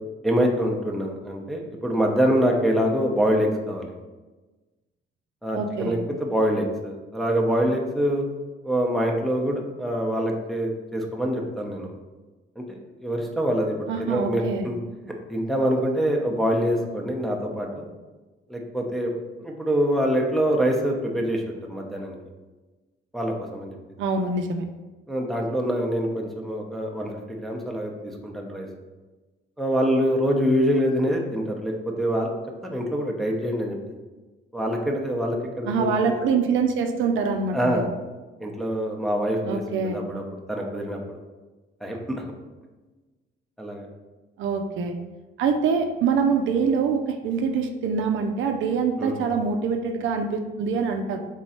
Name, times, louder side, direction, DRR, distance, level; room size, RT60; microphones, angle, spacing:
voice 1, 0.2-3.9 5.4-8.3 8.6-11.9 12.6-14.8 15.3-17.9 18.5-19.1 19.4-22.2 23.1-23.8 25.1-28.7 29.6-32.3 32.6-33.8 34.5-36.1 37.5-37.9 38.4-41.2 41.8-42.2 43.6-43.9 49.0-49.2, equal, ahead, -1 dB, 0.8 m, -25 dB
voice 2, 5.5-6.0 13.9-14.7 24.0-24.7 35.7-37.8 39.5-40.0 44.4-45.0 45.4-51.2, right 5 dB, 75° right, 5 dB, 0.5 m, -24 dB
3.7 x 3.1 x 4.2 m, 1.2 s
cardioid pair, 90°, 20 cm